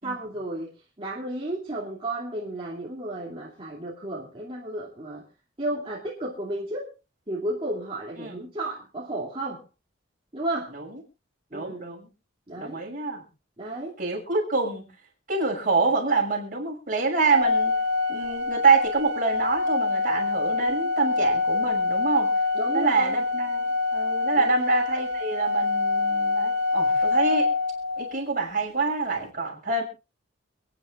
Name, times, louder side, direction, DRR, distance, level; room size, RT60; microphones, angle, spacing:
voice 1, 0.0-5.2 5.6-6.9 7.3-9.6 10.3-10.7 11.5-11.9 12.5-12.8 13.6-14.0 22.5-23.2 24.3-24.7, right 1 dB, 30° right, -5 dB, 2.8 m, -33 dB
voice 2, 11.5-12.1 12.6-13.2 14.0-14.8 15.3-17.7 18.1-22.3 22.7-27.5 28.0-29.8, right 4 dB, 45° right, 0 dB, 6.2 m, -26 dB
Organ, 17.3-28.1, left 3 dB, 65° right, 4.0 m, -25 dB
29.5 x 10.0 x 2.6 m, 0.31 s
head